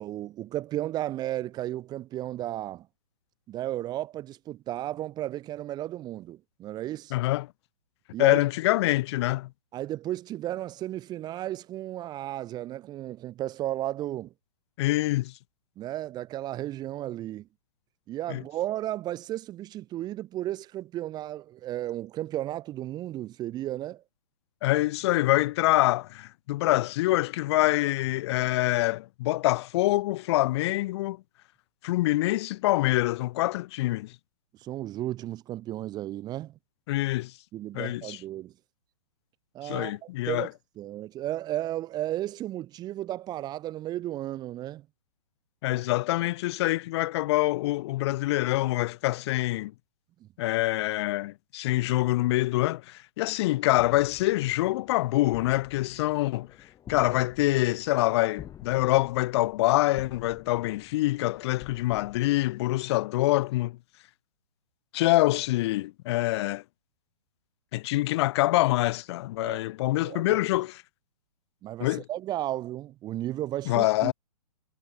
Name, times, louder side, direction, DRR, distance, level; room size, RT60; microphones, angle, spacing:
voice 1, 0.0-2.9 3.5-7.1 8.1-8.4 9.7-14.3 15.8-17.5 18.1-24.0 34.6-36.6 37.5-38.5 39.5-40.5 40.8-44.9 50.2-50.3 69.4-69.6 70.0-70.4 71.6-74.1, right 14 dB, 20° right, 1.3 m, -34 dB
voice 2, 7.1-7.5 8.2-9.5 14.8-15.3 18.3-18.4 24.6-31.2 31.8-34.1 36.9-37.3 37.7-38.2 39.6-40.5 45.6-49.7 50.4-56.5 56.9-63.8 64.9-66.6 67.7-70.8 71.8-72.0 73.7-74.1, left 17 dB, 40° left, 1.5 m, -25 dB
sound 1, 53.8-63.0, left 10 dB, 15° left, 4.1 m, -50 dB
hypercardioid pair, 145°, 20 cm